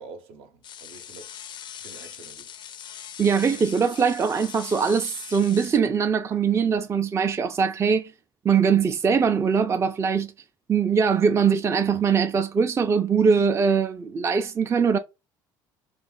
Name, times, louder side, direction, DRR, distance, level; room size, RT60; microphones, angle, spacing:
voice 1, 0.0-1.4 1.8-2.5, right 4 dB, 65° right, 0.7 m, -46 dB
sound 1, 0.6-5.8, left 9 dB, 45° left, 0.4 m, -41 dB
voice 2, 3.2-8.1 8.4-10.3 10.7-15.0, right 6 dB, 25° right, 0.4 m, -22 dB
2.4 x 2.4 x 3.8 m
hypercardioid pair, 70°, 11 cm